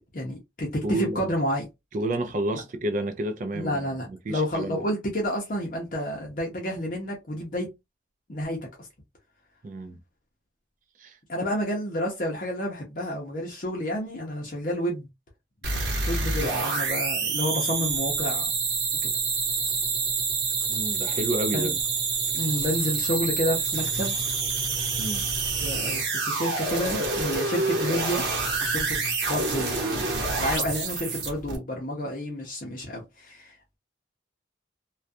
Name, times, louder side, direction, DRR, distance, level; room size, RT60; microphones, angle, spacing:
voice 1, 0.1-1.7 3.5-7.7 8.3-8.9 11.3-15.1 16.1-18.5 21.5-21.7 22.3-24.2 25.6-28.3 28.6-29.0 29.3-30.0 30.4-33.5, equal, 45° left, 0.6 m, -30 dB
voice 2, 0.8-1.3 1.9-4.8 9.6-10.0 11.0-11.2 20.7-21.8 25.0-25.3, right 1 dB, 45° right, 0.4 m, -30 dB
sound 1, 15.6-31.6, right 4 dB, 70° right, 1.0 m, -27 dB
2.3 x 2.2 x 2.5 m
head